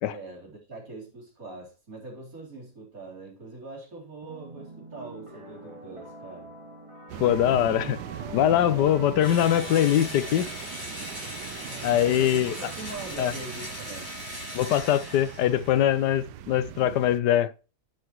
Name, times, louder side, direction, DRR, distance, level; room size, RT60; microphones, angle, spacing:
voice 1, 0.1-6.5 8.5-8.9 11.5-14.1, right 3 dB, 55° right, 4.3 m, -42 dB
sound 1, 4.2-11.2, left 2 dB, 20° right, 2.7 m, -45 dB
sound 2, 7.1-17.2, right 11 dB, 85° right, 1.3 m, -41 dB
voice 2, 7.2-8.0 8.3-10.5 11.8-12.5 13.2-13.3 14.5-17.5, left 11 dB, 90° left, 1.4 m, -22 dB
Engine / Drill, 9.2-15.8, left 1 dB, 25° left, 4.2 m, -39 dB
11.5 x 8.0 x 3.0 m
omnidirectional pair, 1.8 m